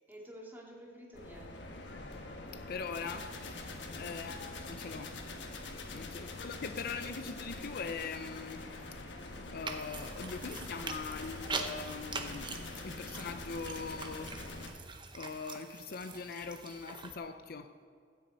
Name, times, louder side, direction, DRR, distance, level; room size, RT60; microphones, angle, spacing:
voice 1, 0.1-1.6 5.8-6.2, equal, 10° right, -3 dB, 2.4 m, -51 dB
sound 1, 1.1-14.7, left 2 dB, 70° left, 1.4 m, -44 dB
voice 2, 2.5-3.6 4.0-5.1 5.9-8.6 9.5-14.3 15.1-17.7, left 5 dB, 55° left, 9 dB, 0.5 m, -42 dB
sound 2, 9.7-17.2, right 4 dB, 25° right, 0.8 m, -44 dB
14.5 x 6.2 x 8.1 m, 2.3 s
head